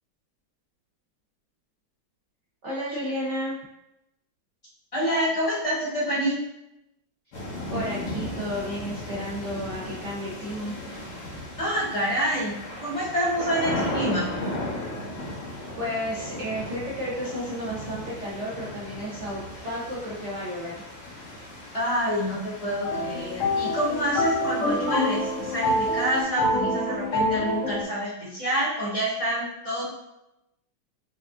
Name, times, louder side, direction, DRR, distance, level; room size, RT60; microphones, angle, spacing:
voice 1, 2.6-3.6 7.7-10.8 15.3-15.4 15.8-20.8, equal, 60° right, -6 dB, 0.7 m, -32 dB
voice 2, 4.9-6.4 11.6-14.3 21.7-29.9, equal, 25° left, -7 dB, 0.8 m, -27 dB
sound 1, 7.3-26.2, left 1 dB, 75° left, 1.8 m, -36 dB
sound 2, 22.8-27.8, left 1 dB, 60° left, 0.8 m, -26 dB
5.5 x 2.4 x 2.4 m, 0.87 s
omnidirectional pair, 2.0 m